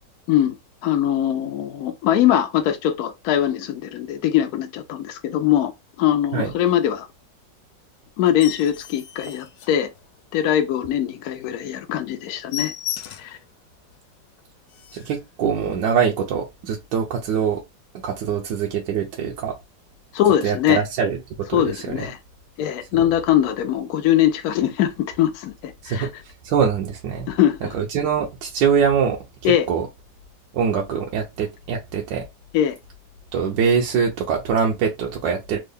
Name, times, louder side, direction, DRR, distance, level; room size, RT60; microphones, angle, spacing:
voice 1, 0.8-5.7 6.0-7.1 8.2-9.9 10.3-12.7 13.2-13.4 20.1-20.8 21.5-22.2 22.6-26.1 27.3-27.7 29.4-29.7 32.5-32.8, left 11 dB, 70° left, 1.0 m, -21 dB
sound 1, 8.2-10.4 10.8-11.0 11.3-11.4 11.7-11.9 12.1-13.4 13.9-14.0 14.4-14.5 14.7-15.2 15.9-16.1, left 11 dB, 90° left, 1.3 m, -35 dB
voice 2, 14.9-17.6 17.9-19.5 20.4-22.1 25.8-26.1 26.4-27.3 27.7-29.9 30.5-32.3 33.3-35.6, right 7 dB, 90° right, 1.3 m, -23 dB
3.7 x 2.1 x 3.4 m
omnidirectional pair, 1.9 m